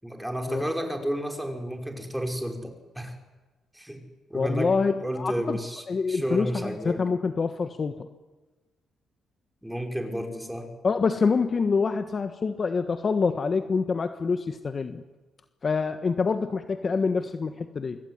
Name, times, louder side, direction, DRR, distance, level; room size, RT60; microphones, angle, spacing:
voice 1, 0.0-3.1 3.7-4.0 4.3-7.0 9.6-10.7, equal, 5° right, 3 dB, 5.6 m, -32 dB
voice 2, 4.3-5.6 5.9-8.1 10.8-15.0 15.6-18.0, left 5 dB, 40° left, 8 dB, 1.4 m, -26 dB
25.5 x 24.0 x 9.7 m, 1.2 s
cardioid pair, 90°, 0 cm